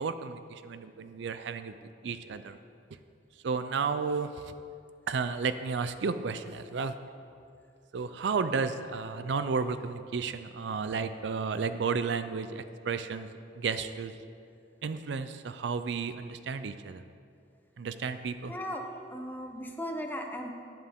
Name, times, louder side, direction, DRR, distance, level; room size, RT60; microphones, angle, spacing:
voice 1, 0.0-1.7 2.0-2.6 3.4-4.5 5.1-6.9 7.9-13.3 13.5-14.1 14.8-17.0 17.8-18.5, right 5 dB, 65° right, 11 dB, 0.4 m, -32 dB
voice 2, 18.5-18.8 19.1-20.5, equal, 10° left, 3 dB, 0.7 m, -37 dB
11.5 x 10.5 x 3.6 m, 2.4 s
head